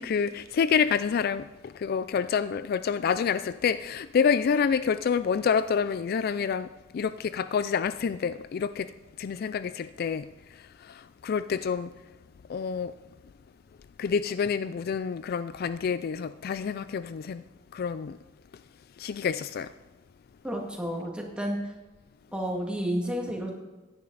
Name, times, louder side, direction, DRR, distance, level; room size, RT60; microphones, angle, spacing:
voice 1, 0.0-6.7 6.9-8.9 9.2-10.3 10.9-11.9 12.5-12.9 14.0-17.4 17.7-18.2 19.0-19.7, left 6 dB, 50° left, 0.3 m, -28 dB
voice 2, 20.4-21.7 22.3-23.5, equal, 5° right, 2.2 m, -31 dB
15.5 x 10.5 x 4.0 m
head